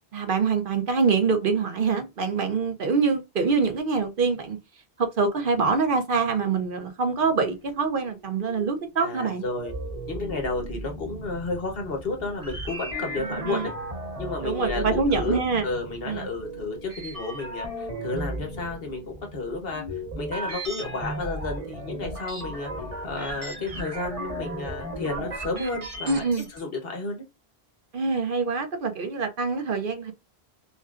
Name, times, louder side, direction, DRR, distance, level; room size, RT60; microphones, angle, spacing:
voice 1, 0.1-4.6 5.0-9.4 13.3-13.7 14.4-15.6 16.1-16.3 26.1-26.5 27.9-30.1, right 4 dB, 60° right, 0.8 m, -25 dB
sound 1, 7.4-26.6, equal, 35° right, 1.1 m, -36 dB
voice 2, 9.0-9.7 10.1-13.7 14.2-19.8 20.2-22.7 23.0-26.2 26.5-27.2, left 3 dB, 65° left, 1.2 m, -32 dB
5.4 x 2.3 x 2.4 m
omnidirectional pair, 1.1 m